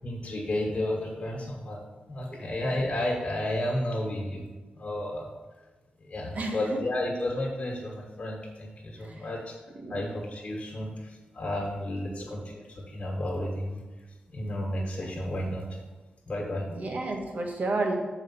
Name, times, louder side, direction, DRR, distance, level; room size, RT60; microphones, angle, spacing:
voice 1, 0.0-1.8 2.1-4.5 4.7-5.3 6.1-9.5 9.9-13.8 14.3-15.8 16.3-17.0, left 1 dB, 40° left, -1 dB, 1.5 m, -32 dB
voice 2, 6.3-6.8 9.0-9.2 9.8-10.0 12.0-12.2 16.7-18.0, right 2 dB, 55° right, 2 dB, 1.3 m, -31 dB
7.0 x 4.8 x 5.7 m, 1.2 s
wide cardioid pair, 155°, 3 cm